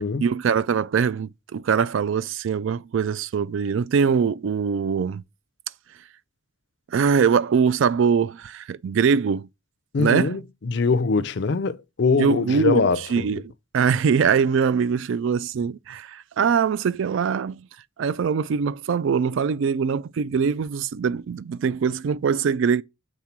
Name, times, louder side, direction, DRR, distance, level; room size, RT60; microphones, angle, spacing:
voice 1, 0.2-5.2 6.9-9.5 10.0-10.4 12.2-13.4 13.7-17.6 18.0-22.8, right 6 dB, 65° right, 0.3 m, -22 dB
voice 2, 9.9-13.4, left 4 dB, 55° left, 0.5 m, -23 dB
7.2 x 3.7 x 5.8 m
head